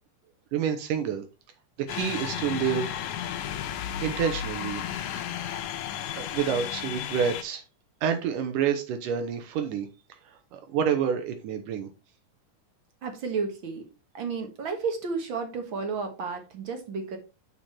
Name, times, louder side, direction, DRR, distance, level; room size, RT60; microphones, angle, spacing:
voice 1, 0.5-1.2 1.8-3.0 4.0-4.8 6.2-7.6 8.0-9.9 10.5-11.9, right 7 dB, 80° right, 7 dB, 2.6 m, -28 dB
sound 1, 1.9-7.4, left 10 dB, 75° left, 1.8 m, -33 dB
voice 2, 13.0-13.8 14.1-17.2, right 5 dB, 50° right, 5 dB, 1.6 m, -32 dB
7.2 x 5.1 x 4.3 m, 0.30 s
omnidirectional pair, 3.8 m